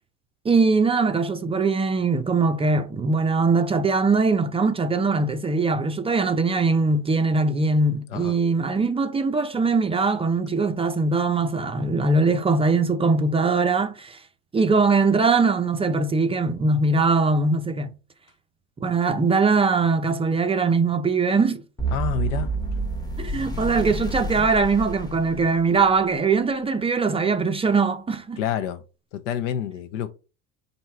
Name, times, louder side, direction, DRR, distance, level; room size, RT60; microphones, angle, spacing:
voice 1, 0.4-14.2 14.5-17.9 18.8-21.6 23.2-28.4, right 4 dB, 15° right, 0.4 m, -21 dB
sound 1, 21.8-25.9, right 2 dB, 10° left, 0.8 m, -29 dB
voice 2, 21.9-22.5 28.4-28.8 29.1-30.1, left 9 dB, 80° left, 0.7 m, -28 dB
4.4 x 2.7 x 4.2 m
supercardioid pair, 95°, 36 cm